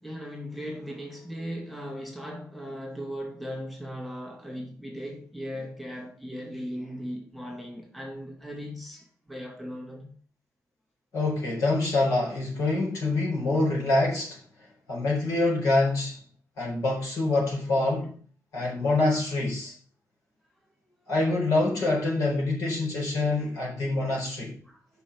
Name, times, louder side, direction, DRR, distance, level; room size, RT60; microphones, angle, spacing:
voice 1, 0.0-10.2 24.7-24.8, equal, ahead, 2.2 m, -38 dB
voice 2, 11.1-14.4 14.9-16.2 16.6-18.2 18.5-19.7 21.1-24.6, left 2 dB, 75° left, 4.2 m, -25 dB
6.2 x 5.6 x 6.2 m
cardioid pair, 125°, 6 cm